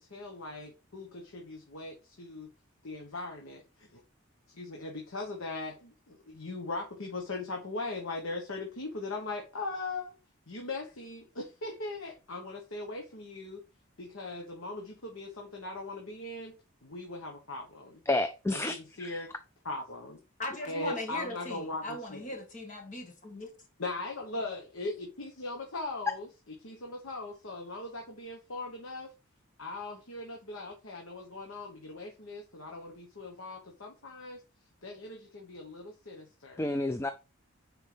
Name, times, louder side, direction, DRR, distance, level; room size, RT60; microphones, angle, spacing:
voice 1, 0.0-2.5 2.8-4.0 4.5-10.1 10.5-13.6 14.0-16.6 16.8-18.0 18.5-19.3 19.6-20.2 20.7-22.2 23.8-26.3 26.6-29.1 29.6-34.4 34.8-36.7, left 2 dB, 80° left, 1.2 m, -39 dB
voice 2, 18.1-19.2 36.6-37.1, left 2 dB, 10° left, 0.3 m, -30 dB
voice 3, 20.4-23.5, left 1 dB, 35° left, 1.4 m, -39 dB
9.3 x 4.5 x 3.4 m
head